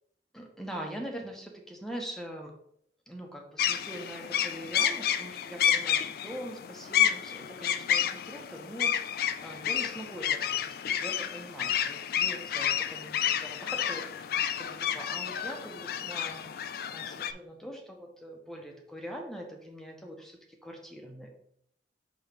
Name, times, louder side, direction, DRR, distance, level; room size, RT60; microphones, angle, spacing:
voice 1, 0.3-2.5 3.1-9.0 9.4-16.5 16.9-21.3, equal, 5° left, 1 dB, 1.0 m, -43 dB
sound 1, 3.6-17.3, left 9 dB, 55° left, 0.3 m, -30 dB
6.2 x 3.1 x 5.2 m, 0.69 s
head